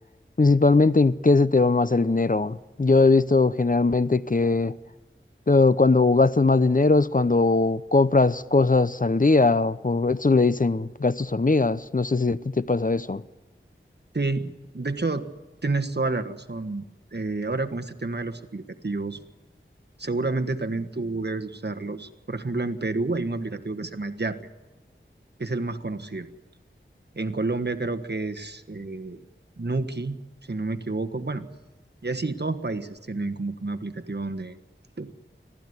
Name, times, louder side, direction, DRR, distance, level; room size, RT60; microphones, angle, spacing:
voice 1, 0.4-4.7 5.5-13.2, left 3 dB, 40° left, 0.7 m, -20 dB
voice 2, 14.1-15.3 15.6-16.8 17.1-19.2 20.0-24.4 25.4-26.3 27.1-29.2 29.6-30.2 30.5-31.5 32.0-34.6 35.0-35.1, right 3 dB, 55° right, 1.5 m, -29 dB
25.0 x 16.5 x 9.6 m
wide cardioid pair, 50°, 21 cm